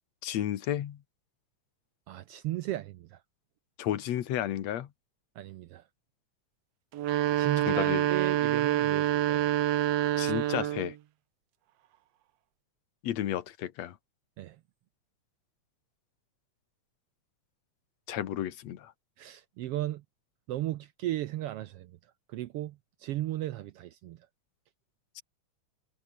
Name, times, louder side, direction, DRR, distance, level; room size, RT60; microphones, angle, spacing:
voice 1, 0.2-1.0 3.8-4.9 7.7-8.1 10.2-10.9 13.0-14.0 18.1-18.9, left 11 dB, 65° left, 2.4 m, -32 dB
voice 2, 2.1-3.2 5.4-5.8 7.4-9.5 14.4-14.6 19.2-20.0 20.5-21.9 22.3-24.2, right 15 dB, 80° right, 1.3 m, -35 dB
sound 1, 6.9-11.0, right 13 dB, 65° right, 1.9 m, -27 dB
omnidirectional pair, 3.5 m